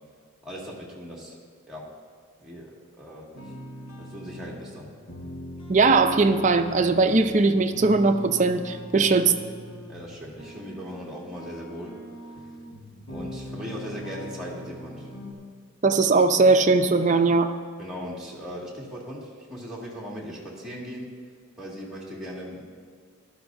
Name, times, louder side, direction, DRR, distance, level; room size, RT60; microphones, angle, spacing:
voice 1, 0.4-1.4 1.7-1.8 2.4-3.5 4.0-4.9 9.9-11.9 13.1-15.1 17.8-21.1 21.6-22.6, equal, 5° right, -6 dB, 1.9 m, -38 dB
sound 1, 3.3-15.3, equal, 90° left, 1.7 m, -41 dB
voice 2, 5.7-9.3 15.8-17.5, right 3 dB, 35° right, 7 dB, 0.5 m, -20 dB
14.0 x 12.0 x 2.6 m, 2.1 s
head